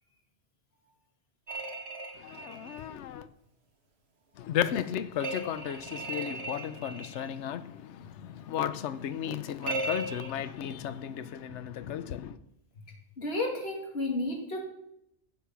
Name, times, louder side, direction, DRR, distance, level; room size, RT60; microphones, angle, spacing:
sound 1, 1.5-2.8 5.2-7.3 9.6-10.3, right 2 dB, 65° right, 1.5 m, -37 dB
voice 1, 2.2-3.3 4.4-12.4, left 10 dB, 80° left, 1.0 m, -34 dB
voice 2, 13.2-14.6, left 2 dB, 60° left, 2.5 m, -32 dB
11.5 x 7.6 x 5.8 m
omnidirectional pair, 1.2 m